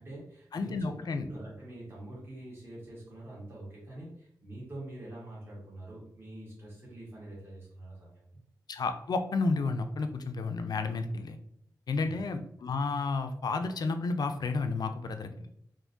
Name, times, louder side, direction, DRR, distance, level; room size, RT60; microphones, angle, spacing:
voice 1, 0.0-0.9 1.2-8.4 11.9-12.2, right 1 dB, 35° right, -6 dB, 1.3 m, -45 dB
voice 2, 0.5-1.3 8.7-11.4 11.9-15.5, left 3 dB, 65° left, 7 dB, 0.4 m, -31 dB
3.5 x 2.6 x 2.6 m, 0.71 s
wide cardioid pair, 85°, 7 cm